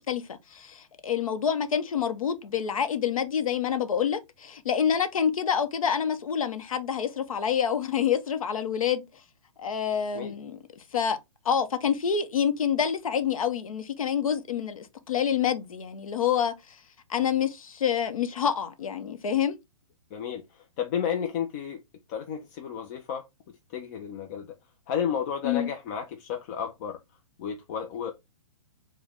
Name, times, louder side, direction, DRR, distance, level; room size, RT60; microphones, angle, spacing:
voice 1, 0.0-9.0 9.6-11.2 11.4-16.8 17.1-19.6 25.4-25.7, left 8 dB, 80° left, 0.7 m, -27 dB
voice 2, 20.1-21.8 22.1-24.5 24.9-27.0 27.4-28.1, left 8 dB, 30° left, 0.4 m, -32 dB
4.6 x 2.2 x 3.3 m
hypercardioid pair, 145°, 17 cm